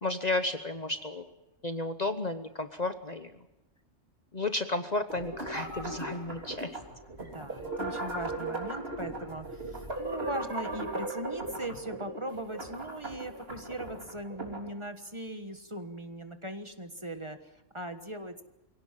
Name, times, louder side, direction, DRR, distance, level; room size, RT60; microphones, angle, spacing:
voice 1, 0.0-1.3 1.6-3.3 4.3-6.8, left 2 dB, 35° left, 9 dB, 1.0 m, -32 dB
sound 1, 5.1-14.7, right 2 dB, 50° right, 3.7 m, -38 dB
voice 2, 7.2-18.4, right 1 dB, 25° right, 8 dB, 1.4 m, -39 dB
24.0 x 17.5 x 7.5 m, 1.0 s
omnidirectional pair, 1.3 m